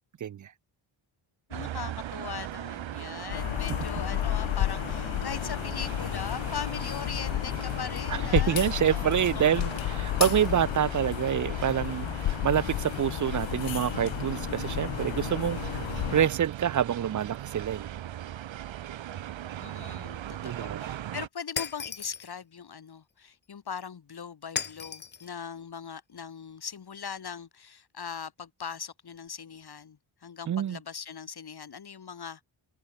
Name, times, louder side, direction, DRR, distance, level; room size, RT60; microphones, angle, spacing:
voice 1, 1.5-9.4 19.6-32.4, left 7 dB, 50° left, 7.1 m, -40 dB
sound 1, 1.5-21.3, right 11 dB, 65° right, 1.0 m, -39 dB
sound 2, 3.3-16.3, left 15 dB, 70° left, 0.6 m, -32 dB
voice 2, 8.3-15.8 16.1-17.9 20.4-20.9 30.5-30.8, right 9 dB, 40° right, 0.4 m, -27 dB
Shatter, 21.6-22.3 24.6-25.3, left 6 dB, 25° left, 0.4 m, -35 dB
wide cardioid pair, 175°, 49 cm